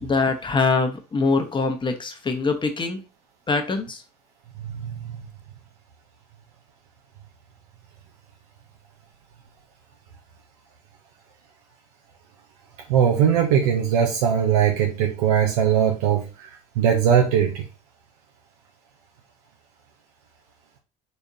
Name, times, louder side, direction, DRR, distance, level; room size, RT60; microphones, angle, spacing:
voice 1, 0.0-3.0 3.5-4.0, left 4 dB, 25° left, 6 dB, 1.0 m, -23 dB
voice 2, 4.6-5.2 12.9-16.5 16.8-17.6, right 8 dB, 80° right, 2 dB, 0.7 m, -20 dB
4.3 x 3.5 x 2.6 m, 0.30 s
hypercardioid pair, 75°, 20 cm